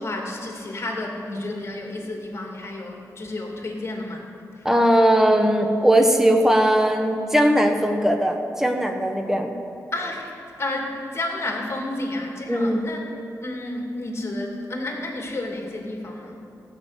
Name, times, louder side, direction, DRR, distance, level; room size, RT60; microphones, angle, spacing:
voice 1, 0.0-4.2 9.9-10.3 10.6-13.1 13.4-16.4, left 2 dB, 45° left, 0 dB, 2.5 m, -31 dB
voice 2, 4.6-9.6 12.5-12.9, equal, 5° right, 4 dB, 1.1 m, -19 dB
17.0 x 6.6 x 8.1 m, 2.6 s
wide cardioid pair, 90°, 6 cm